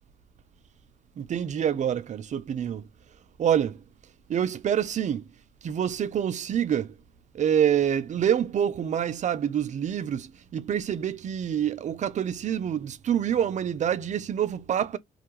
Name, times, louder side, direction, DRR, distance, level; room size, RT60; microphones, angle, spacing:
voice 1, 1.2-2.8 3.4-3.8 4.3-5.3 5.6-6.9 7.3-15.0, right 9 dB, 40° right, 0.4 m, -26 dB
2.3 x 2.2 x 2.8 m
cardioid pair, 90°, 19 cm